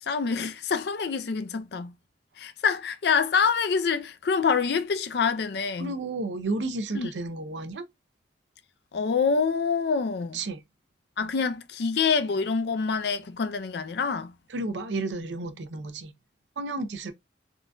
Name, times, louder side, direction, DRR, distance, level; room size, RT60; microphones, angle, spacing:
voice 1, 0.0-1.9 2.4-5.9 6.9-7.1 8.9-10.4 11.2-14.3, left 5 dB, 60° left, 0.4 m, -26 dB
voice 2, 5.8-7.8 10.3-10.6 14.5-16.1 16.6-17.1, right 2 dB, 80° right, 0.6 m, -32 dB
3.7 x 2.5 x 2.2 m
head